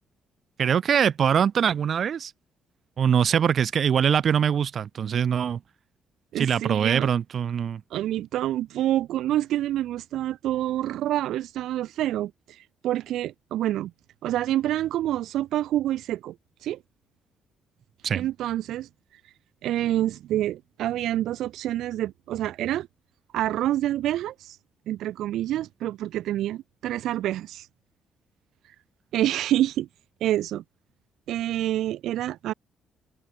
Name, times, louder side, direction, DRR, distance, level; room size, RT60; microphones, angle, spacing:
voice 1, 0.6-2.3 3.0-5.6 6.4-7.8 18.0-18.3, right 8 dB, 40° right, 4.0 m, -23 dB
voice 2, 6.3-7.1 7.9-13.9 14.2-16.3 16.6-16.8 18.1-18.9 19.6-22.9 23.3-24.6 24.9-27.7 29.1-29.9 30.2-30.6 31.3-32.5, right 13 dB, 75° right, 3.4 m, -27 dB
cardioid pair, 160°, 0 cm